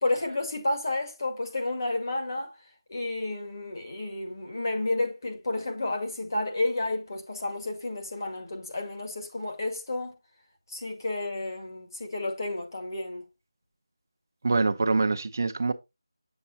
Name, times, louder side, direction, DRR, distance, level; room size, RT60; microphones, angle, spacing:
voice 1, 0.0-2.6 2.9-10.2 10.7-13.2, left 2 dB, 45° left, 2.0 m, -31 dB
voice 2, 14.4-15.7, right 3 dB, 40° right, 0.5 m, -25 dB
8.0 x 7.1 x 2.7 m
figure-of-eight pair, 175°, 3 cm